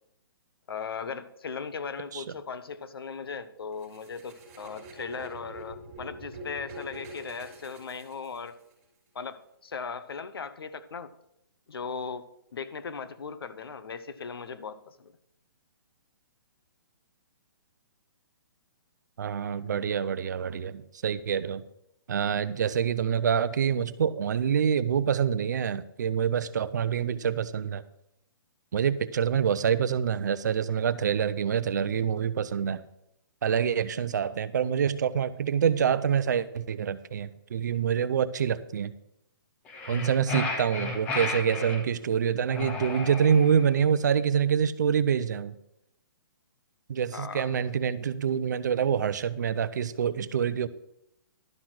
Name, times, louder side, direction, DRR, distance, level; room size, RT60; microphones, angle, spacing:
voice 1, 0.7-8.6 9.1-11.1 11.7-12.2 12.5-15.1 47.1-47.6, left 5 dB, 80° left, 12 dB, 0.9 m, -38 dB
sound 1, 3.8-8.7, right 1 dB, 20° right, 3.8 m, -44 dB
voice 2, 19.2-21.6 22.1-27.8 28.7-32.8 33.4-38.9 39.9-45.5 46.9-50.7, right 7 dB, 50° right, 14 dB, 0.6 m, -26 dB
sound 2, 39.7-41.8 42.5-43.7, left 3 dB, 10° left, 0.8 m, -33 dB
12.0 x 6.0 x 6.2 m, 0.80 s
hypercardioid pair, 175°, 12 cm